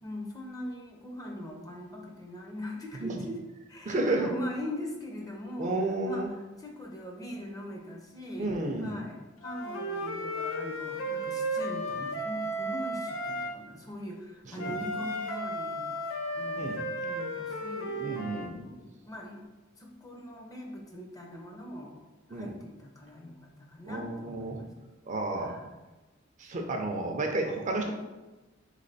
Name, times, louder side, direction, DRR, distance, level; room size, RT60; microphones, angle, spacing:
voice 1, 0.0-3.4 3.7-5.8 6.0-15.9 16.3-16.7 17.0-18.1 18.6-19.4 19.8-22.0 22.3-24.7 25.4-25.7 27.8-27.9, left 1 dB, 20° left, 0 dB, 0.5 m, -41 dB
voice 2, 3.8-4.3 5.6-6.3 8.4-9.0 14.6-14.8 16.6-16.8 18.0-18.7 22.3-22.5 23.9-24.6 25.1-25.5 26.4-27.9, right 2 dB, 35° right, 2 dB, 0.5 m, -31 dB
Wind instrument woodwind instrument, 9.4-13.6 14.6-18.5, equal, 75° left, 0.5 m, -34 dB
3.4 x 3.3 x 3.9 m, 1.1 s
head